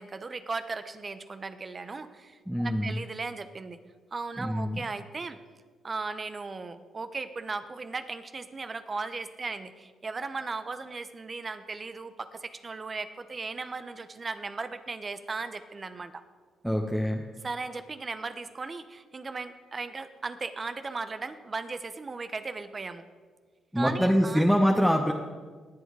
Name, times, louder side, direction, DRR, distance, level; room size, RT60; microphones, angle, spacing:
voice 1, 0.0-3.8 4.1-5.4 5.8-16.2 17.4-23.0 23.7-24.4, right 4 dB, 40° right, 11 dB, 1.0 m, -37 dB
voice 2, 2.5-3.0 4.4-4.8 16.6-17.2 23.7-25.1, equal, 5° right, 2 dB, 1.3 m, -24 dB
20.0 x 7.9 x 4.9 m, 1.5 s
hypercardioid pair, 45°, 0 cm